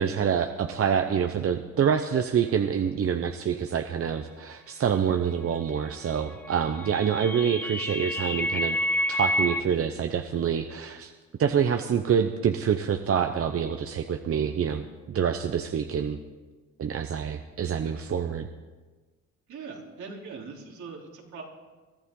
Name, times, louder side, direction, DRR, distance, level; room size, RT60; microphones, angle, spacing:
voice 1, 0.0-8.8 9.1-11.1 11.4-16.2 16.8-18.5, right 7 dB, 50° right, 7 dB, 0.8 m, -26 dB
sound 1, 6.5-9.6, equal, 5° left, 0.6 m, -28 dB
voice 2, 19.5-21.4, right 4 dB, 75° right, -2 dB, 3.5 m, -41 dB
22.5 x 13.5 x 3.8 m, 1.3 s
cardioid pair, 90°, 30 cm